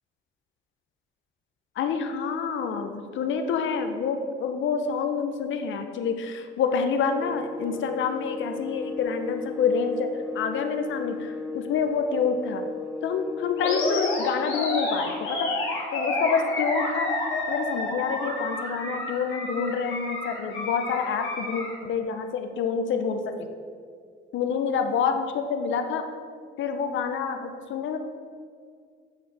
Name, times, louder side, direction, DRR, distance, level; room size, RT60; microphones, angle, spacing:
voice 1, 1.8-12.6 13.0-15.5 15.9-17.1 17.5-23.5 24.3-26.0 26.6-28.0, left 6 dB, 75° left, 7 dB, 0.8 m, -27 dB
sound 1, 7.2-14.2, left 3 dB, ahead, 0.5 m, -35 dB
Animal, 13.6-21.7, left 2 dB, 90° left, 2.0 m, -30 dB
8.0 x 4.4 x 4.8 m, 2.1 s
cardioid pair, 90°, 20 cm